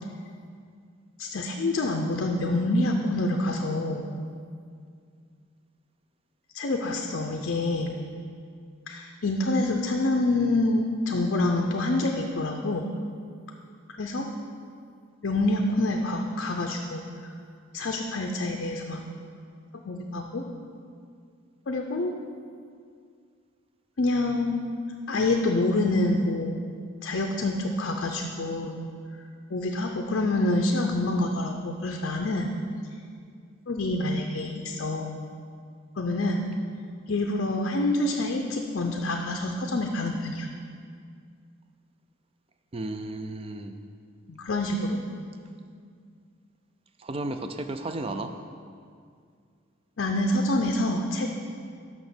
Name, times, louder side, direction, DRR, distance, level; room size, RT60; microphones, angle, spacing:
voice 1, 1.2-4.1 6.5-8.0 8.9-12.9 14.0-14.3 15.2-17.0 17.7-19.0 19.8-20.4 21.7-22.1 24.0-24.6 25.1-26.6 27.0-28.7 29.5-32.5 33.7-35.1 36.0-36.4 37.1-40.5 44.3-45.0 50.0-51.3, left 2 dB, 55° left, 2 dB, 0.5 m, -26 dB
voice 2, 42.7-43.8 47.0-48.3, right 2 dB, 25° right, 7 dB, 0.4 m, -33 dB
6.2 x 6.0 x 6.8 m, 2.2 s
head